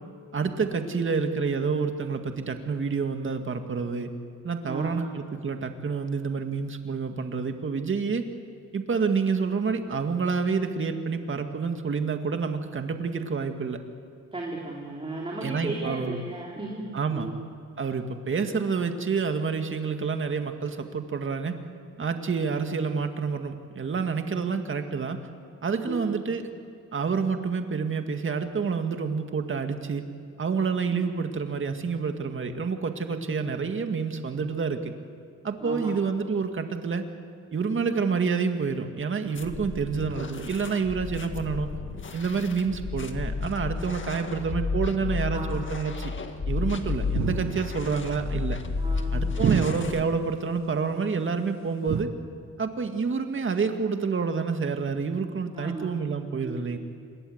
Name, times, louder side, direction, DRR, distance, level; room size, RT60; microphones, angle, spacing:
voice 1, 0.3-4.1 4.4-8.2 8.7-13.8 15.4-16.2 16.9-17.3 17.8-21.6 22.0-25.2 25.6-26.5 26.9-30.0 30.4-34.9 35.4-37.1 37.5-41.8 42.1-46.1 46.5-48.6 49.1-52.1 52.6-56.8, right 5 dB, 40° right, 6 dB, 2.0 m, -28 dB
voice 2, 0.9-1.3 4.7-5.1 14.3-16.8 17.1-17.3 25.8-26.3 30.9-31.1 35.6-36.0 45.3-45.8 48.8-49.4 55.5-55.8 56.4-56.7, right 2 dB, 20° right, -3 dB, 3.8 m, -36 dB
sound 1, 39.4-50.0, left 4 dB, 40° left, 1.9 m, -32 dB
sound 2, 47.1-47.9 49.4-50.2 51.9-52.0, right 7 dB, 65° right, 1.8 m, -28 dB
27.0 x 21.5 x 8.1 m, 2.2 s
cardioid pair, 125°, 31 cm